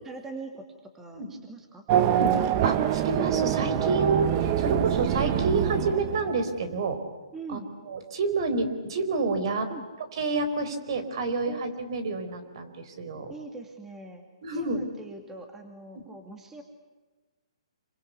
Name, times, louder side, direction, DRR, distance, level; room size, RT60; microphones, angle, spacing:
voice 1, 0.0-1.8 7.3-7.7 9.7-9.9 11.4-11.6 13.3-14.3 14.5-16.6, right 3 dB, 10° right, 4 dB, 2.4 m, -42 dB
Race car auto racing / Accelerating revving vroom, 1.9-6.6, right 10 dB, 30° right, 1.2 m, -25 dB
voice 2, 1.9-7.0 7.5-9.7 10.1-13.3 14.4-14.8 15.9-16.0, right 3 dB, 50° right, 10 dB, 4.4 m, -29 dB
28.0 x 24.5 x 8.3 m, 1.3 s
hypercardioid pair, 155°, 3 cm